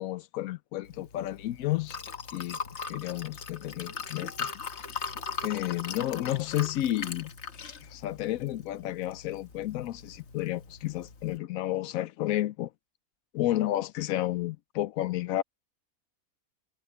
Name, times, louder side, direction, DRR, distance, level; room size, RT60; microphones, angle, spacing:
voice 1, 0.0-2.0 2.3-2.6 2.9-4.9 5.4-7.3 7.8-12.7 13.3-15.4, left 14 dB, 70° left, 1.0 m, -31 dB
Liquid, 0.8-11.4, left 5 dB, 50° left, 1.4 m, -40 dB
omnidirectional pair, 1.6 m